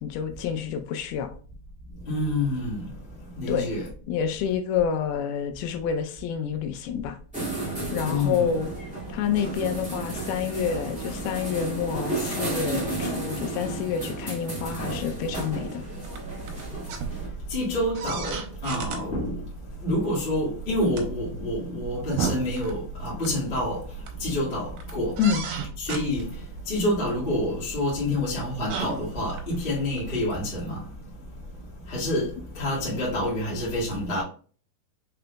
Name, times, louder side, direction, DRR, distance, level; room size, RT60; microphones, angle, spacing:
voice 1, 0.0-1.3 3.5-3.7 4.1-7.2 7.9-8.7 9.1-15.8 25.2-25.4, left 8 dB, 85° left, 2.5 m, -28 dB
voice 2, 2.1-2.8 3.3-3.9 8.0-8.5 17.5-19.4 19.8-23.9 24.2-25.2 25.8-26.3 26.6-30.8 31.9-34.2, left 1 dB, 30° left, 0.9 m, -27 dB
sound 1, 7.3-17.3, right 2 dB, 5° right, 0.6 m, -33 dB
sound 2, 14.6-30.3, right 5 dB, 85° right, 2.6 m, -36 dB
5.9 x 3.9 x 2.2 m
omnidirectional pair, 4.4 m